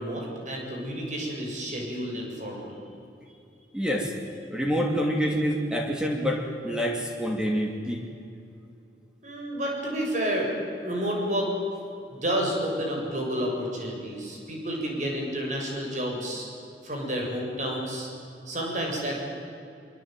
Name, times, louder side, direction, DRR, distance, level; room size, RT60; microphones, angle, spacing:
voice 1, 0.0-2.8 9.2-10.5 10.8-11.5 12.1-16.5 16.8-18.1 18.5-19.2, equal, 45° right, -1 dB, 7.2 m, -30 dB
voice 2, 3.7-4.1 4.5-8.0, equal, 5° right, 1 dB, 3.0 m, -27 dB
25.0 x 24.0 x 9.3 m, 2.6 s
head